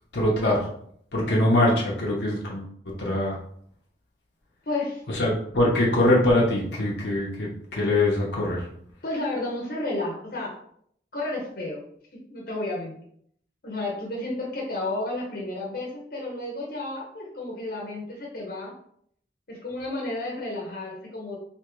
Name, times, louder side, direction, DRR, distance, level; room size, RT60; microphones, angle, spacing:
voice 1, 0.1-0.6 1.1-3.4 5.2-8.6, left 1 dB, 85° left, -3 dB, 0.9 m, -23 dB
voice 2, 4.7-5.0 9.0-10.5 11.1-11.8 12.3-12.9 13.6-18.7 19.5-21.4, left 2 dB, 55° left, -3 dB, 0.9 m, -31 dB
3.4 x 2.8 x 3.0 m, 0.66 s
head